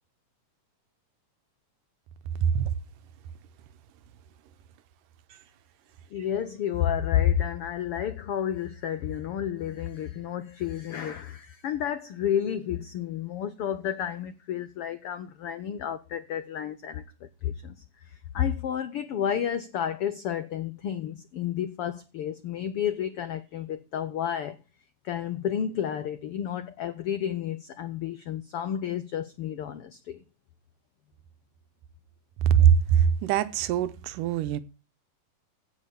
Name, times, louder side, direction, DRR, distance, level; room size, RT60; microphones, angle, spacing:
voice 1, 6.1-17.7 18.0-24.6 25.0-30.2, left 9 dB, 90° left, 1.2 m, -31 dB
voice 2, 33.0-34.6, right 9 dB, 85° right, 2.5 m, -22 dB
16.0 x 5.6 x 6.9 m
omnidirectional pair, 3.7 m